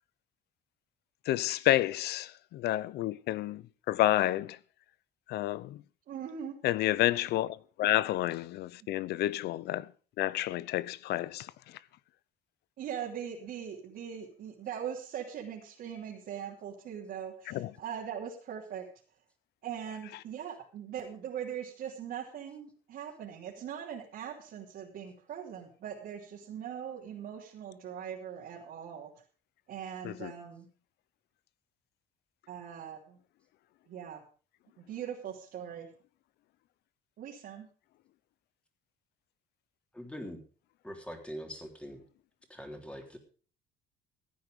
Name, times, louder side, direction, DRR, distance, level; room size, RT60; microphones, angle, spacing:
voice 1, 1.3-3.6 3.9-4.6 5.3-5.8 6.6-9.9 10.2-11.5 17.5-17.7 30.0-30.1, left 15 dB, 75° left, 0.7 m, -29 dB
voice 2, 6.1-6.5 12.8-18.9 19.6-29.1 29.7-30.7 32.5-33.2 33.9-34.2 34.8-35.9 37.2-37.7, right 8 dB, 65° right, 3.1 m, -41 dB
voice 3, 39.9-40.4 40.8-42.0 42.5-43.2, equal, 5° left, 3.6 m, -42 dB
15.5 x 9.5 x 5.2 m
cardioid pair, 110°, 17 cm